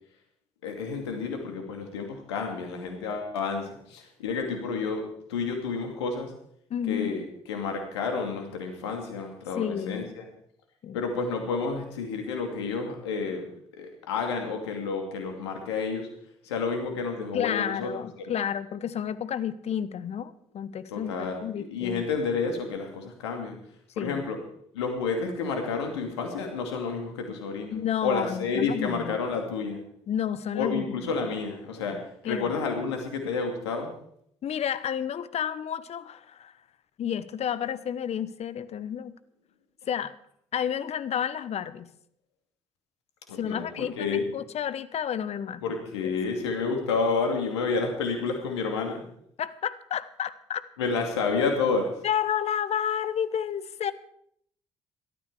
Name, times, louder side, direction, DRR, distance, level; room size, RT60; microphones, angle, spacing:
voice 1, 0.6-6.3 6.9-10.3 10.9-13.5 13.8-16.1 16.4-17.9 20.9-23.6 24.0-24.4 24.7-29.8 30.5-32.0 32.2-33.9 43.3-44.3 45.6-49.0 50.8-51.9, left 4 dB, 85° left, 4 dB, 2.6 m, -30 dB
voice 2, 6.7-7.2 9.6-10.1 10.8-11.0 17.3-22.0 24.0-24.2 27.7-29.2 30.1-30.9 31.9-32.5 34.4-36.5 37.0-39.2 39.9-40.1 40.5-41.9 43.4-45.6 46.0-46.1 49.4-50.7 52.0-53.9, left 9 dB, 50° left, 16 dB, 1.0 m, -31 dB
18.0 x 13.0 x 4.8 m, 0.69 s
hypercardioid pair, 45°, 14 cm